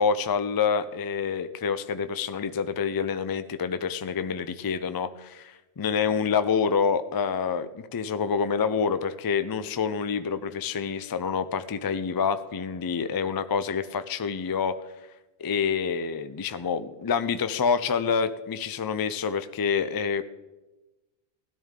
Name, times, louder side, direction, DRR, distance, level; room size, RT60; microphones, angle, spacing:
voice 1, 0.0-14.8 15.4-20.2, left 6 dB, 35° left, 12 dB, 0.3 m, -27 dB
16.5 x 12.5 x 3.7 m, 1.1 s
omnidirectional pair, 1.1 m